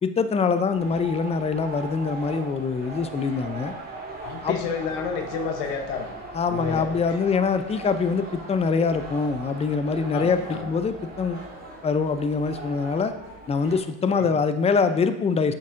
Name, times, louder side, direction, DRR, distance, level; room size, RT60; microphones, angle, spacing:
voice 1, 0.0-3.7 4.4-4.6 6.3-11.4 11.8-13.1 13.5-15.5, left 5 dB, 15° left, 10 dB, 0.4 m, -24 dB
sound 1, 0.7-13.8, right 2 dB, 20° right, 2.1 m, -39 dB
voice 2, 4.2-6.1 6.5-6.9 10.1-10.7 14.2-14.3, left 6 dB, 85° left, 5 dB, 0.9 m, -30 dB
8.4 x 6.4 x 2.5 m, 0.93 s
supercardioid pair, 80°, 46 cm